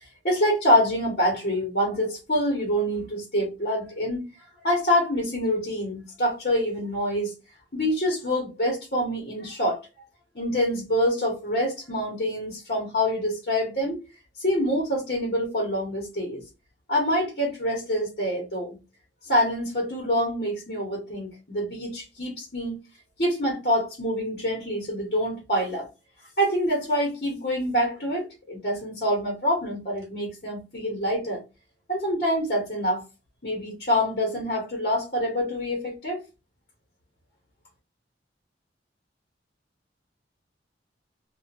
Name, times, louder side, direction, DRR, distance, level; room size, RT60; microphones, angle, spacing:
voice 1, 0.0-4.2 4.6-7.3 7.7-9.8 10.3-14.0 14.4-16.4 16.9-18.8 19.2-22.8 23.2-25.9 26.4-31.4 31.9-33.0 33.4-36.2, equal, 50° left, 1.2 m, -26 dB
2.8 x 2.5 x 2.4 m
head